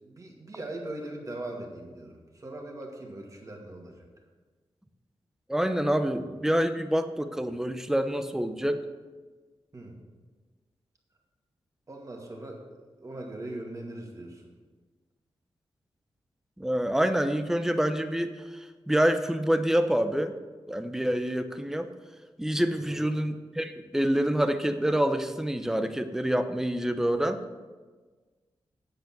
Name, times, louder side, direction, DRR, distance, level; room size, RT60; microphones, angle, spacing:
voice 1, 0.0-4.1 9.7-10.0 11.9-12.6 13.0-14.5 22.8-23.0, right 1 dB, 35° right, 0 dB, 2.1 m, -40 dB
voice 2, 5.5-8.8 16.6-20.3 20.7-21.9 22.4-27.4, equal, 5° right, 9 dB, 0.7 m, -27 dB
8.9 x 8.1 x 6.1 m, 1.3 s
wide cardioid pair, 120°, 10 cm